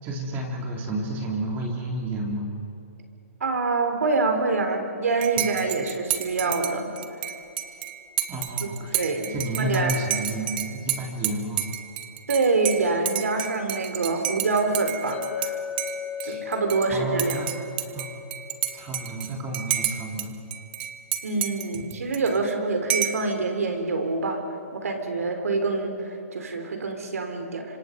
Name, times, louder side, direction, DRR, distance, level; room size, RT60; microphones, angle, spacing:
voice 1, 0.0-2.5 5.4-5.5 7.7-7.8 8.3-9.0 9.3-11.7 16.2-16.4 16.9-17.6 17.9-18.2 18.7-20.4 21.7-22.1, right 1 dB, 25° right, 0 dB, 3.6 m, -31 dB
voice 2, 3.4-6.9 8.6-9.9 12.3-15.6 16.2-17.4 21.2-24.4 24.7-27.7, right 3 dB, 80° right, 5 dB, 4.1 m, -26 dB
Dishes pots and pans / Cutlery silverware / Chink clink, 5.2-15.5 15.8-16.9 17.2-20.3 20.5-22.5 22.9-23.3, right 12 dB, 40° right, 1.5 m, -30 dB
Chink clink, 15.1-19.6, left 9 dB, 25° left, 4.5 m, -37 dB
26.0 x 25.5 x 5.4 m, 2.8 s
hypercardioid pair, 150°, 8 cm